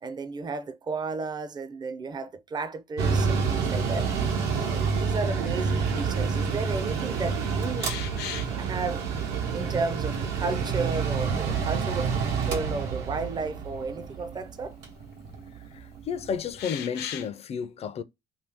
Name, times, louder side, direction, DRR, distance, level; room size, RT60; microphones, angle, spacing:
voice 1, 0.0-8.0 8.6-9.1 9.5-14.8, right 4 dB, 25° right, 0.4 m, -33 dB
Mechanical fan, 3.0-16.3, right 5 dB, 85° right, 0.9 m, -28 dB
sound 1, 7.8-8.6 10.1-10.2 11.1-12.0 12.4-12.5 14.4-14.5 16.6-17.3, left 10 dB, 80° left, 0.6 m, -37 dB
voice 2, 15.7-18.0, left 7 dB, 40° left, 0.4 m, -32 dB
2.7 x 2.6 x 3.5 m
cardioid pair, 110°, 17 cm